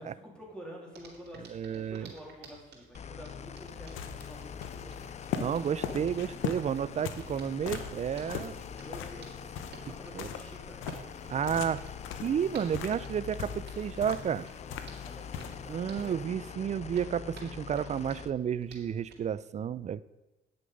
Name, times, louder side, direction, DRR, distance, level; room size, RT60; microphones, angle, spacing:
voice 1, 0.0-5.0 8.5-9.5 9.9-10.8 14.6-16.9, equal, 5° left, -3 dB, 3.2 m, -49 dB
Hands, 0.9-19.2, right 4 dB, 60° right, 2.5 m, -54 dB
voice 2, 1.5-2.1 5.4-8.5 10.1-10.3 11.2-11.9 12.2-14.5 15.7-20.0, right 8 dB, 35° right, 18 dB, 0.4 m, -31 dB
sound 1, 2.9-18.3, left 7 dB, 35° left, 0.4 m, -44 dB
sound 2, 3.2-16.1, left 7 dB, 85° left, 0.8 m, -41 dB
9.5 x 6.6 x 5.2 m, 1.0 s
cardioid pair, 90°, 20 cm